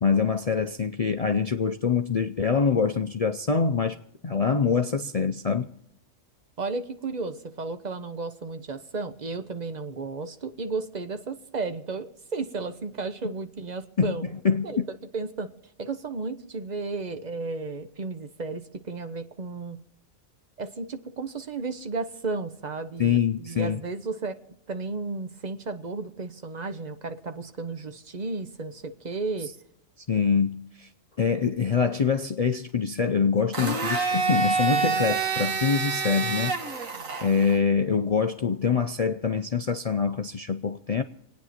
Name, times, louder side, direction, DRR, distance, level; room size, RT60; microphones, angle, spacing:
voice 1, 0.0-4.0 4.2-5.7 14.0-14.2 14.4-14.9 23.0-23.8 30.1-30.9 31.2-36.6 37.2-41.0, left 6 dB, 55° left, 0.4 m, -25 dB
voice 2, 6.6-14.2 14.6-14.8 15.1-15.5 15.8-19.8 20.6-24.4 24.7-29.5, right 3 dB, 35° right, 0.9 m, -33 dB
Domestic sounds home sounds, 33.5-37.6, right 5 dB, 75° right, 1.8 m, -27 dB
27.0 x 9.4 x 4.3 m
omnidirectional pair, 1.4 m